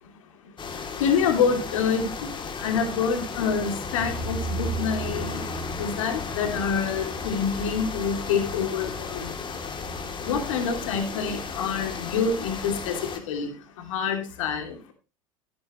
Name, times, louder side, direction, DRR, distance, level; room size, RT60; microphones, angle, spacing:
sound 1, 0.6-13.2, left 3 dB, 30° left, 3.1 m, -33 dB
voice 1, 1.0-2.3 2.6-5.4 5.8-9.3 10.2-13.5 13.9-14.8, left 6 dB, 70° left, 5 dB, 3.0 m, -26 dB
15.0 x 10.5 x 3.2 m, 0.30 s
hypercardioid pair, 80°, 17 cm